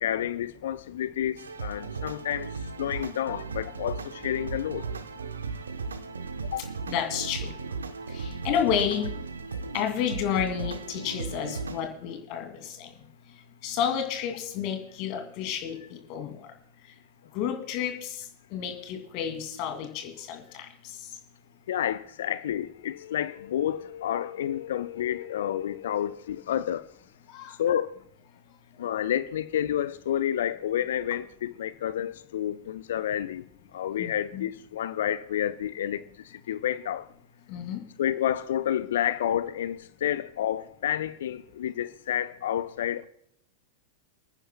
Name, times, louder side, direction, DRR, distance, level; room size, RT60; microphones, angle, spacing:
voice 1, 0.0-2.5 2.8-4.9 6.5-6.7 21.7-26.9 27.6-27.9 28.8-33.4 33.7-37.1 38.0-43.1, left 10 dB, 60° left, 0.5 m, -30 dB
sound 1, 1.4-11.8, right 4 dB, 70° right, 0.8 m, -36 dB
voice 2, 6.9-7.5 8.1-9.1 9.7-12.9 13.6-16.5 17.3-21.2 27.3-27.6 34.0-34.4 37.5-37.8, left 8 dB, 45° left, 2.4 m, -31 dB
28.0 x 10.0 x 2.2 m
figure-of-eight pair, 90°, 0 cm